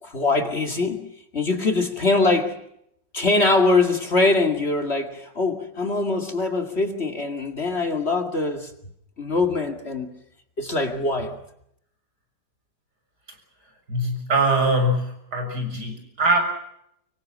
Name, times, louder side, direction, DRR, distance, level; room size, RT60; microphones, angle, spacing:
voice 1, 0.0-2.6 3.1-8.7 9.2-10.1 10.6-11.4, left 3 dB, 35° left, 2.4 m, -23 dB
voice 2, 13.9-16.4, right 2 dB, 65° right, 7.2 m, -22 dB
25.5 x 23.5 x 7.4 m
omnidirectional pair, 1.9 m